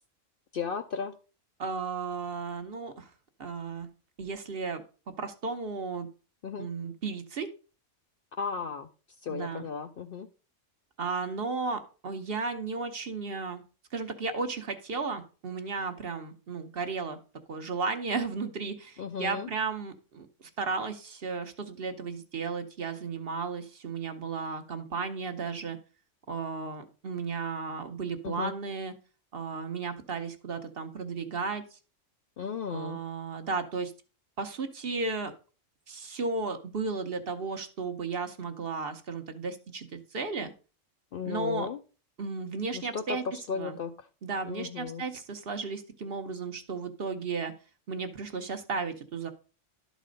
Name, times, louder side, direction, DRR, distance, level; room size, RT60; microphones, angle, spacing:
voice 1, 0.5-1.1 6.4-6.7 8.4-8.9 9.2-10.3 19.0-19.5 28.2-28.5 32.4-33.0 41.1-41.8 42.7-44.1 44.4-45.0, left 6 dB, 60° left, 8 dB, 0.6 m, -35 dB
voice 2, 1.6-3.1 3.4-3.9 4.2-4.8 5.2-6.1 6.6-7.5 9.3-9.7 11.0-13.6 13.9-17.2 17.5-25.8 26.3-28.9 29.3-31.8 32.7-33.9 34.4-35.3 35.9-40.5 41.2-41.7 42.2-43.2 43.5-43.8 44.2-47.5 47.9-49.3, right 4 dB, 50° right, 7 dB, 1.0 m, -34 dB
11.5 x 4.2 x 5.1 m, 0.36 s
omnidirectional pair, 1.3 m